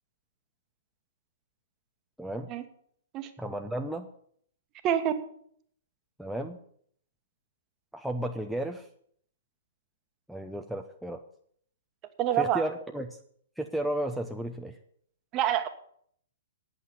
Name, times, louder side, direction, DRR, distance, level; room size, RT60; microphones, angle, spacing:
voice 1, 2.2-2.5 3.4-4.1 6.2-6.6 7.9-8.9 10.3-11.2 12.3-13.2 13.6-14.8, right 1 dB, ahead, 3 dB, 0.7 m, -33 dB
voice 2, 12.2-12.6 15.3-15.7, right 10 dB, 30° right, 8 dB, 1.3 m, -26 dB
9.1 x 8.3 x 8.2 m, 0.63 s
figure-of-eight pair, 115°, 0 cm